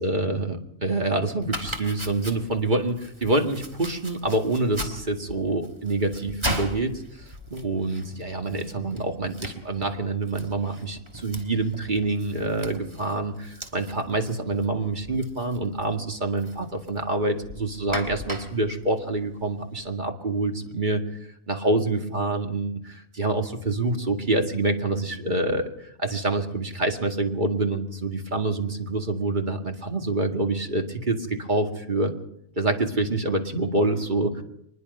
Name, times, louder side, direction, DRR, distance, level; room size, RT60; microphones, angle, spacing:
voice 1, 0.0-7.0 7.5-21.0 21.5-32.2 32.6-34.4, right 2 dB, 35° right, 4 dB, 2.2 m, -26 dB
Domestic sounds home sounds, 1.4-19.9, equal, 20° right, 2.8 m, -39 dB
24.0 x 21.0 x 5.5 m, 0.72 s
omnidirectional pair, 1.4 m